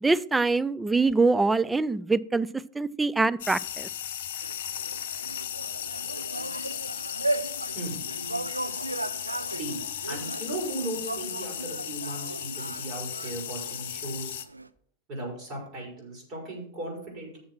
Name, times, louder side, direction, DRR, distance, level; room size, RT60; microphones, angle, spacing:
voice 1, 0.0-2.5 2.7-3.9, right 3 dB, 10° right, 0.3 m, -24 dB
sound 1, 3.4-14.4, left 10 dB, 55° left, 0.7 m, -36 dB
sound 2, 4.4-14.7, right 2 dB, 85° right, 0.4 m, -36 dB
voice 2, 9.5-14.4 15.1-17.4, right 2 dB, 35° right, 5.0 m, -37 dB
7.4 x 7.0 x 6.1 m
figure-of-eight pair, 90°, 0 cm